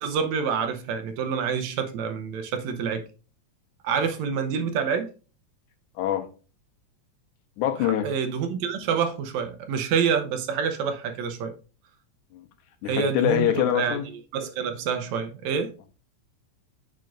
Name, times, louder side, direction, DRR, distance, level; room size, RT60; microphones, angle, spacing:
voice 1, 0.0-3.0 3.8-5.1 7.8-11.5 12.9-14.0 14.3-15.7, right 6 dB, 75° right, 2.0 m, -27 dB
voice 2, 6.0-6.3 7.6-8.1 12.3-12.4 12.8-14.0, left 12 dB, 90° left, 2.3 m, -24 dB
7.6 x 5.3 x 2.5 m
omnidirectional pair, 3.4 m